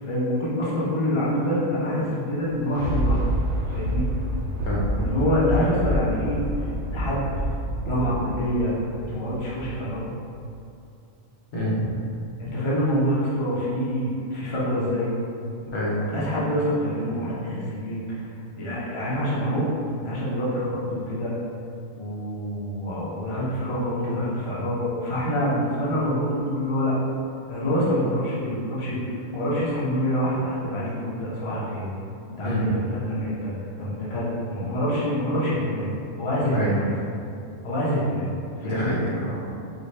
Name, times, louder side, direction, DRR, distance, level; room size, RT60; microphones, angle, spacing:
voice 1, 0.0-3.2 3.6-4.1 5.0-6.4 6.9-7.3 7.9-10.0 12.4-15.1 16.1-18.3 18.6-19.7 20.0-21.3 22.0-26.9 27.5-31.9 32.4-33.5 33.8-35.9 36.2-36.9 37.6-38.3 38.6-39.0, equal, 35° left, -7 dB, 0.5 m, -26 dB
Thunder, 2.4-9.9 10.4-10.5, equal, 70° right, 0.8 m, -28 dB
voice 2, 11.5-11.8 15.7-16.0 32.4-32.7 36.5-36.8 38.6-39.4, equal, 60° left, -6 dB, 1.0 m, -26 dB
4.1 x 2.1 x 3.2 m, 2.5 s
omnidirectional pair, 1.4 m